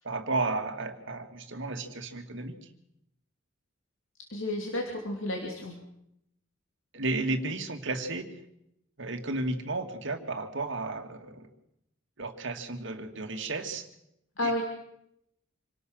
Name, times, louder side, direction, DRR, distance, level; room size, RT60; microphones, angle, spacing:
voice 1, 0.0-2.6 6.9-8.3 9.0-11.5 12.2-13.8 14.4-14.6, right 2 dB, 65° right, 5 dB, 2.3 m, -33 dB
voice 2, 4.3-5.8 14.4-14.6, left 1 dB, 70° left, 1 dB, 3.2 m, -31 dB
27.0 x 18.0 x 6.6 m, 0.79 s
head